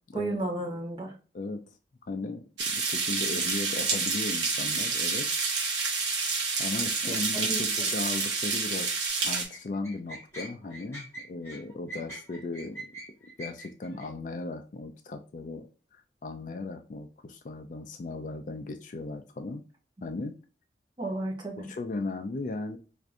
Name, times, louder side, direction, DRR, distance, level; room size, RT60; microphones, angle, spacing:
voice 1, 0.1-1.1 7.0-7.6 21.0-21.6, right 1 dB, 25° right, 0.8 m, -33 dB
voice 2, 1.3-1.6 2.1-5.3 6.6-12.9 13.4-19.6 20.0-20.4 21.6-22.8, left 3 dB, 45° left, 0.3 m, -37 dB
Light Outdoor Rain, 2.6-9.5, right 4 dB, 85° right, 0.9 m, -28 dB
sound 1, 9.1-14.1, right 1 dB, 15° left, 1.2 m, -43 dB
4.5 x 2.5 x 2.5 m
head